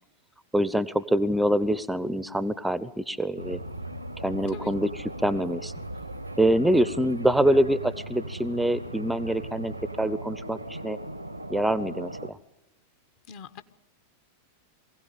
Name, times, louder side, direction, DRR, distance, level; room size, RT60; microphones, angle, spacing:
voice 1, 0.5-3.6 4.2-5.7 6.4-11.0 11.5-12.4, right 1 dB, 5° right, 16 dB, 0.8 m, -25 dB
sound 1, 3.4-12.3, right 1 dB, 90° right, 1.3 m, -38 dB
voice 2, 13.3-13.6, left 6 dB, 45° left, 10 dB, 1.4 m, -42 dB
23.5 x 16.5 x 9.3 m, 0.97 s
figure-of-eight pair, 90°, 0 cm